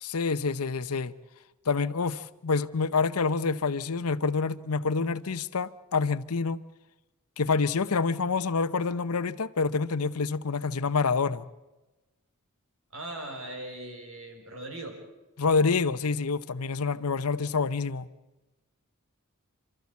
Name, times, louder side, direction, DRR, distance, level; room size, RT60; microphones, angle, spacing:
voice 1, 0.0-1.1 1.7-6.6 7.4-11.5 15.4-18.1, left 4 dB, 85° left, 0.8 m, -27 dB
voice 2, 12.9-15.0, right 1 dB, 65° right, 5.5 m, -39 dB
28.5 x 13.5 x 8.4 m
head